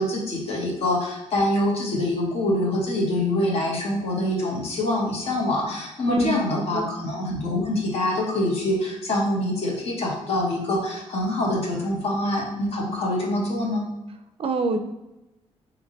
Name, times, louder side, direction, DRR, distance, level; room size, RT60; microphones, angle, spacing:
voice 1, 0.0-13.8, left 1 dB, 60° left, -2 dB, 1.2 m, -25 dB
voice 2, 6.1-6.9 14.4-14.8, right 2 dB, 55° right, 8 dB, 0.4 m, -25 dB
3.5 x 2.9 x 3.9 m, 0.96 s
cardioid pair, 105°, 12 cm